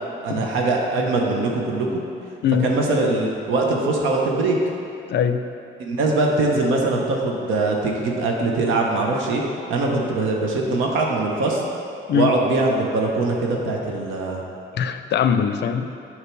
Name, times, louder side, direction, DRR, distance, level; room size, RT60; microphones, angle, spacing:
voice 1, 0.2-2.0 2.6-4.6 5.8-9.4 9.7-11.6 12.1-14.4, right 2 dB, 90° right, -1 dB, 0.9 m, -22 dB
voice 2, 5.1-5.4 12.1-12.3 14.7-16.0, left 7 dB, 60° left, 9 dB, 0.4 m, -21 dB
6.8 x 4.7 x 4.5 m, 2.6 s
cardioid pair, 90°, 20 cm